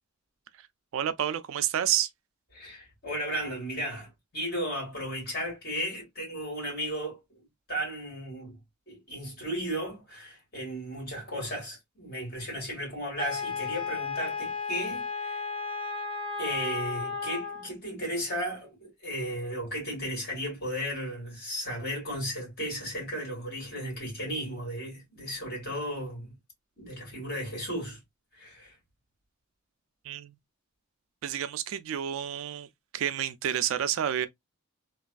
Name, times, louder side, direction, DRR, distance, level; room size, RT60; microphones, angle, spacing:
voice 1, 0.9-2.1 30.0-30.4 31.2-32.7 32.9-34.3, right 10 dB, 65° right, 0.3 m, -29 dB
voice 2, 2.5-8.6 8.9-15.4 16.4-26.3 26.8-28.0 28.3-28.7, equal, 45° left, 2.2 m, -35 dB
Wind instrument woodwind instrument, 13.2-17.7, left 4 dB, 25° left, 0.8 m, -34 dB
3.2 x 2.3 x 2.3 m
head